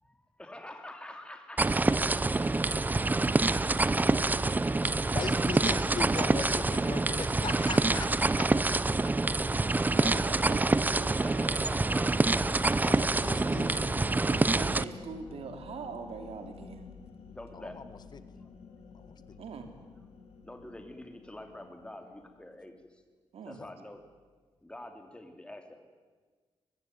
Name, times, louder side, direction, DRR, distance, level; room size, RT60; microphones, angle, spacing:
voice 1, 0.0-1.9 5.2-5.4 9.9-10.6 11.2-12.6 17.3-17.8 18.4-18.5 20.4-23.0 23.5-24.0 24.6-25.8, left 1 dB, 10° left, 5 dB, 3.2 m, -46 dB
sound 1, 1.6-14.8, right 2 dB, 15° right, 0.7 m, -26 dB
voice 2, 4.8-8.5 9.0-9.1 9.7-10.7 12.8-13.9 17.5-18.2 18.9-19.1 23.6-23.7, left 5 dB, 45° left, 13 dB, 1.5 m, -40 dB
sound 2, 9.6-22.8, left 6 dB, 85° left, 3.5 m, -51 dB
voice 3, 9.9-11.7 12.8-13.0 13.3-13.6 14.3-16.9 19.4-19.7 23.3-23.6, right 5 dB, 80° right, 6 dB, 3.2 m, -42 dB
24.0 x 20.5 x 9.4 m, 1.4 s
wide cardioid pair, 130°, 10 cm